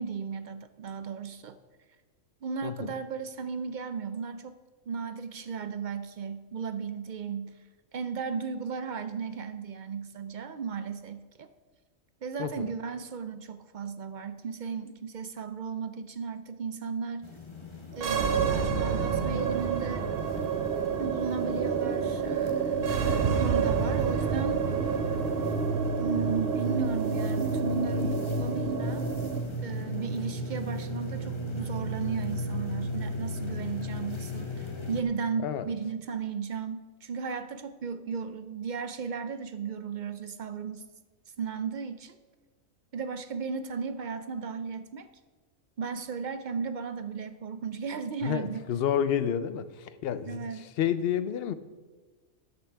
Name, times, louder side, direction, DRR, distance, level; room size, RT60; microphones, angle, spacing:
voice 1, 0.0-1.6 2.4-4.5 4.9-7.6 7.9-11.5 12.2-17.3 18.0-20.1 21.0-24.7 26.0-29.0 29.6-40.8 41.4-42.2 42.9-45.1 45.8-48.7 50.3-50.6, right 5 dB, 70° right, 0.4 m, -35 dB
voice 2, 2.6-2.9 12.4-12.7 35.4-35.7 48.2-51.5, left 9 dB, 60° left, 0.7 m, -30 dB
sound 1, 17.2-35.0, equal, 25° left, 0.8 m, -35 dB
sound 2, 17.9-29.4, right 6 dB, 55° right, 0.8 m, -29 dB
13.5 x 9.1 x 3.4 m
omnidirectional pair, 1.4 m